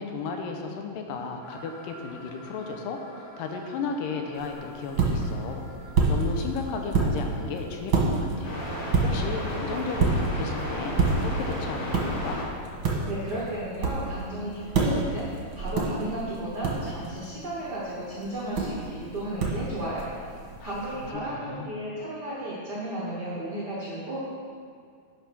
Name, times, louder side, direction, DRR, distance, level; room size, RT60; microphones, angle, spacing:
voice 1, 0.0-5.6 6.1-8.5 9.0-12.5 20.6-21.7, left 4 dB, 80° left, 3 dB, 2.3 m, -34 dB
sound 1, 1.4-12.4, equal, 50° left, 3.5 m, -38 dB
sound 2, 4.3-21.1, right 3 dB, 50° right, 1.5 m, -29 dB
voice 2, 13.1-20.1 20.6-24.2, right 1 dB, 85° right, -6 dB, 0.9 m, -34 dB
10.5 x 5.3 x 6.1 m, 2.2 s
omnidirectional pair, 4.2 m